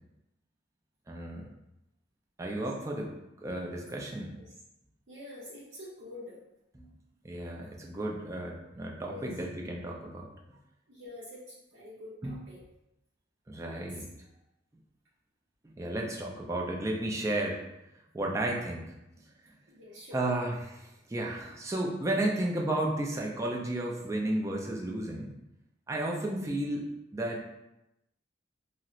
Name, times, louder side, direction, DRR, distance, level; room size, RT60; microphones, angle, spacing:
voice 1, 1.1-1.5 2.4-4.3 7.2-10.3 12.2-12.4 13.5-14.1 15.6-17.6 18.1-18.9 20.1-25.3 25.9-26.9 27.1-27.5, right 1 dB, 15° right, 0 dB, 0.4 m, -33 dB
voice 2, 5.1-6.4 9.1-9.3 10.9-12.6 13.7-14.0 19.7-20.3, left 2 dB, 70° right, -9 dB, 0.7 m, -46 dB
4.0 x 2.0 x 2.4 m, 0.90 s
head